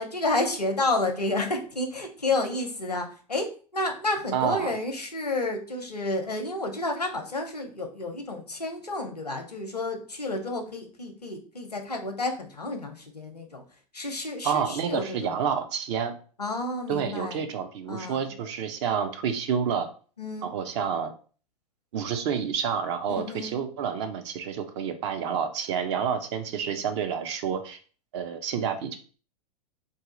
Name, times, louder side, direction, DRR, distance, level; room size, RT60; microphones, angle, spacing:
voice 1, 0.0-3.5 3.7-13.6 13.9-15.5 16.4-17.4 17.9-18.3 20.2-20.5 23.1-23.6, left 2 dB, 90° left, 4 dB, 0.6 m, -30 dB
voice 2, 4.3-4.7 14.4-16.1 16.9-19.9 20.4-21.1 21.9-27.8 28.1-29.0, right 7 dB, 45° right, 7 dB, 0.6 m, -29 dB
2.7 x 2.4 x 3.8 m, 0.39 s
figure-of-eight pair, 95°, 20 cm